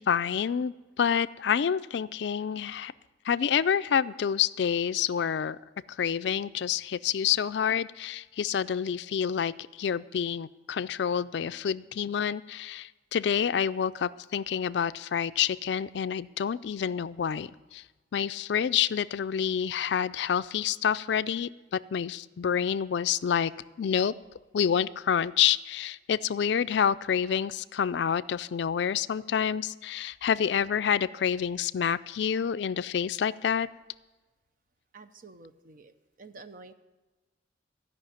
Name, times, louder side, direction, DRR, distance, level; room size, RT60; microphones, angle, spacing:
voice 1, 0.0-2.9 3.3-5.6 6.0-9.5 9.8-17.8 18.1-23.5 23.8-24.1 24.5-33.7, left 8 dB, 65° left, 16 dB, 0.4 m, -28 dB
voice 2, 34.9-36.7, right 3 dB, 50° right, 10 dB, 0.7 m, -49 dB
15.0 x 5.7 x 9.1 m, 1.2 s
head